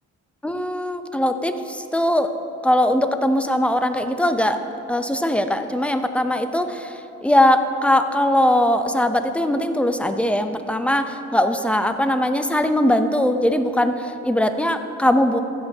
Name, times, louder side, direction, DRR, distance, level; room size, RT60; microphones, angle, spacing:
voice 1, 0.4-2.3 2.6-4.6 4.9-15.4, left 1 dB, 5° left, 8 dB, 0.5 m, -20 dB
14.5 x 8.2 x 2.8 m, 2.9 s
cardioid pair, 90°, 30 cm